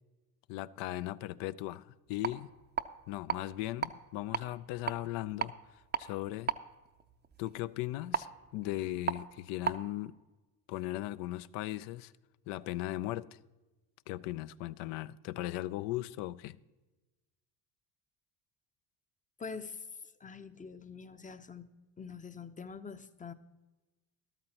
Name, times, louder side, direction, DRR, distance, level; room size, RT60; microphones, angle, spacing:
voice 1, 0.5-2.5 3.1-5.5 6.0-6.5 7.4-10.2 10.7-12.1 12.5-13.4 14.1-16.6, left 16 dB, 65° left, 0.5 m, -38 dB
sound 1, 2.1-9.8, right 8 dB, 20° right, 0.6 m, -39 dB
voice 2, 19.4-19.8 20.2-21.7 22.0-23.3, left 5 dB, 15° left, 0.7 m, -45 dB
13.0 x 12.5 x 2.9 m
hypercardioid pair, 70°, 48 cm